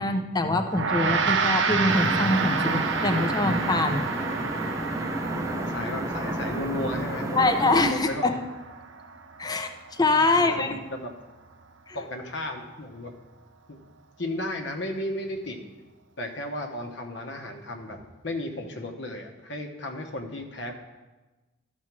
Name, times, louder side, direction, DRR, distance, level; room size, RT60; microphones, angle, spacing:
voice 1, 0.0-4.0 7.4-8.4 9.4-10.7 11.9-12.0, left 2 dB, 20° left, 7 dB, 0.6 m, -24 dB
Gong, 0.7-10.2, right 5 dB, 70° right, 0.6 m, -30 dB
sound 1, 1.9-7.9, right 1 dB, 15° right, 0.7 m, -31 dB
voice 2, 5.5-8.3 10.4-11.1 11.9-13.1 13.7-13.8 14.2-15.6 16.2-20.7, left 1 dB, 65° left, 4 dB, 1.0 m, -34 dB
13.0 x 4.4 x 6.0 m, 1.2 s
head